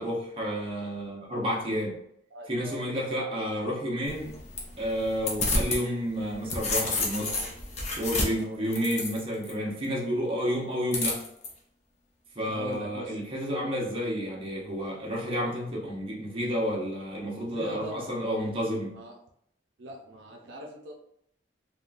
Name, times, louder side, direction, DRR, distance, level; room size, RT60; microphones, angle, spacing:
voice 1, 0.0-2.0 2.5-4.3 4.8-7.3 8.0-11.2 12.3-19.0, equal, 30° right, -3 dB, 0.7 m, -30 dB
voice 2, 2.3-2.8 7.2-7.5 8.3-8.6 12.5-13.2 17.5-18.2 18.9-19.1 19.8-20.9, right 2 dB, 75° right, 1 dB, 0.5 m, -40 dB
sound 1, 4.1-5.8 6.2-9.5 10.9-11.5, left 2 dB, 35° left, 0.6 m, -30 dB
3.5 x 2.2 x 2.5 m, 0.72 s
head